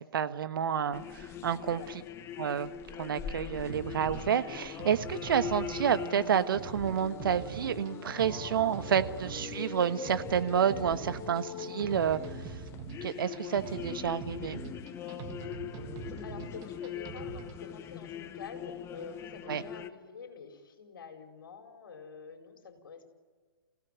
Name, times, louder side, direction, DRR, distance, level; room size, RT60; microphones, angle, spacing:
voice 1, 0.1-1.8 2.4-2.7 3.0-12.2 12.4-12.5 13.0-14.6 19.5-19.6, right 8 dB, 60° right, 11 dB, 1.4 m, -29 dB
sound 1, 0.9-19.9, left 9 dB, 20° left, 1.1 m, -42 dB
sound 2, 3.7-17.6, right 7 dB, 30° right, 1.6 m, -44 dB
voice 2, 16.2-23.1, left 5 dB, 60° left, 4 dB, 4.8 m, -47 dB
28.5 x 16.5 x 9.4 m, 1.5 s
figure-of-eight pair, 125°, 13 cm